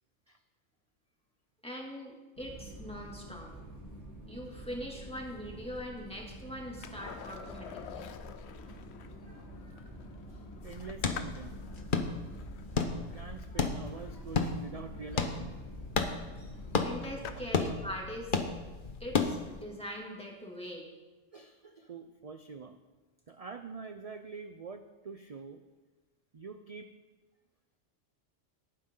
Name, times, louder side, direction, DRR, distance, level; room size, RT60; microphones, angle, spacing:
voice 1, 1.6-3.5 4.3-8.1 16.8-18.4 19.0-20.9, equal, 5° left, -2 dB, 2.5 m, -42 dB
sound 1, 2.4-17.4, right 1 dB, 30° left, 3.1 m, -48 dB
Skateboard, 6.8-17.7 20.3-20.4, left 8 dB, 60° left, 1.0 m, -50 dB
sound 2, 10.6-19.6, left 4 dB, 45° left, 1.1 m, -34 dB
voice 2, 10.6-11.6 12.9-15.6 17.3-17.4 21.3-22.8 23.3-25.6 26.3-26.9, right 4 dB, 45° right, 8 dB, 0.5 m, -45 dB
18.5 x 9.7 x 3.8 m, 1.2 s
omnidirectional pair, 1.3 m